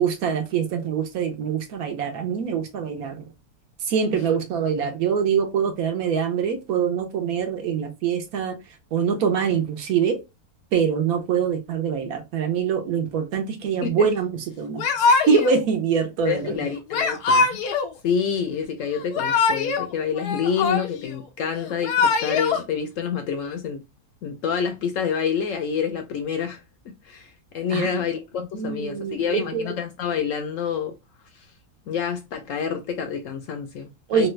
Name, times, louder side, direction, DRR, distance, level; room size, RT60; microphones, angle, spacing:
voice 1, 0.0-3.3 3.8-8.6 8.9-10.2 10.7-14.8 15.3-16.6 27.7-27.9 28.5-29.7 34.1-34.3, right 7 dB, 70° right, 1.2 m, -24 dB
Yell / Crying sobbing, 14.8-15.6 16.9-17.9 18.9-19.9 20.2-21.1 21.7-22.6, left 4 dB, 90° left, 1.2 m, -22 dB
voice 2, 16.2-17.6 18.0-23.8 24.2-26.6 27.0-30.9 31.9-34.3, left 7 dB, 70° left, 0.8 m, -27 dB
3.3 x 2.2 x 3.1 m
omnidirectional pair, 1.6 m